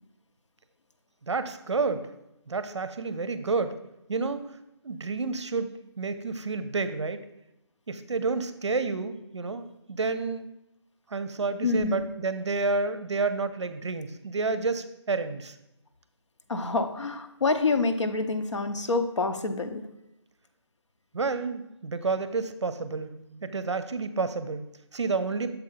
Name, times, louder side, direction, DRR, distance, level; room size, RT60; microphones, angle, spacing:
voice 1, 1.2-2.1 2.5-3.8 4.1-4.5 4.8-5.7 6.0-7.2 7.9-10.5 11.1-15.5 21.1-25.5, right 4 dB, 75° right, 11 dB, 0.6 m, -30 dB
voice 2, 11.6-12.1 16.5-19.9, left 3 dB, 85° left, 8 dB, 0.7 m, -27 dB
6.9 x 4.4 x 3.9 m, 0.89 s
figure-of-eight pair, 180°, 15 cm